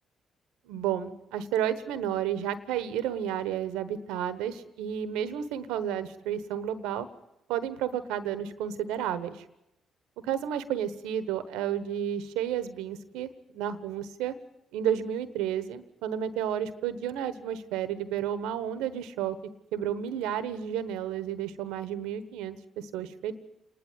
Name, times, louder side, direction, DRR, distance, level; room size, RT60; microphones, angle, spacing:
voice 1, 0.6-7.1 7.5-9.4 10.2-14.3 14.7-19.4 19.7-23.3, right 9 dB, 85° right, 13 dB, 1.1 m, -31 dB
28.0 x 11.0 x 9.2 m, 0.89 s
hypercardioid pair, 50°, 0 cm